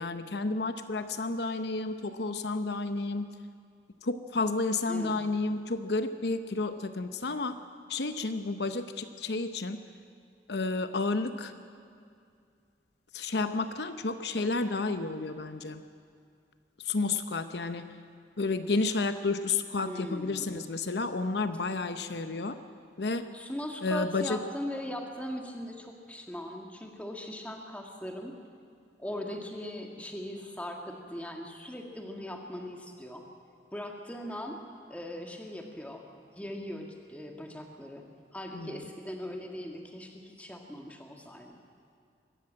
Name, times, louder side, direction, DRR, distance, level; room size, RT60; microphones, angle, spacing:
voice 1, 0.0-3.3 4.0-7.6 7.9-9.8 10.5-11.5 13.1-15.8 16.8-17.9 18.4-22.6 23.0-23.3 23.8-24.4 38.5-38.8, left 3 dB, 75° left, 9 dB, 0.8 m, -31 dB
voice 2, 4.9-5.2 19.8-20.7 23.3-28.4 29.0-33.3 33.7-34.6 34.9-36.0 36.4-38.0 38.3-41.6, equal, 10° left, 2 dB, 1.8 m, -39 dB
22.5 x 13.5 x 8.7 m, 2.3 s
head